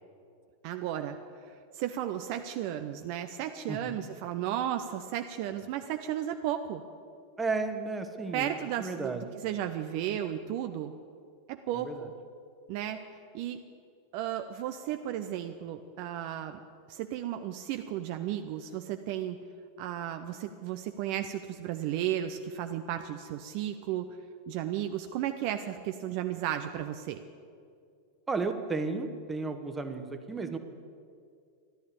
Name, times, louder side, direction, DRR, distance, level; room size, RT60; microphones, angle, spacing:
voice 1, 0.6-1.2 1.7-6.8 8.3-10.9 11.5-12.1 12.7-13.0 13.3-13.6 14.1-16.6 16.9-19.4 19.8-24.2 24.5-27.2, right 11 dB, 45° right, 7 dB, 0.6 m, -34 dB
voice 2, 7.4-9.2 11.7-12.1 28.3-30.6, right 3 dB, 15° right, 7 dB, 1.2 m, -33 dB
14.0 x 11.5 x 8.4 m, 2.4 s
figure-of-eight pair, 90°, 0 cm